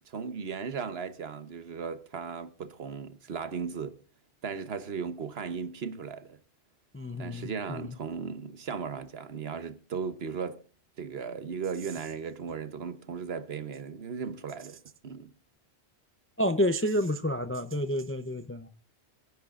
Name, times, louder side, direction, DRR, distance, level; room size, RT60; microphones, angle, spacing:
voice 1, 0.1-4.0 4.4-6.4 7.2-10.6 11.0-15.3, right 6 dB, 60° right, 1.2 m, -36 dB
voice 2, 6.9-7.9 16.4-18.7, equal, 15° left, 0.4 m, -29 dB
25.5 x 10.5 x 2.4 m
omnidirectional pair, 1.2 m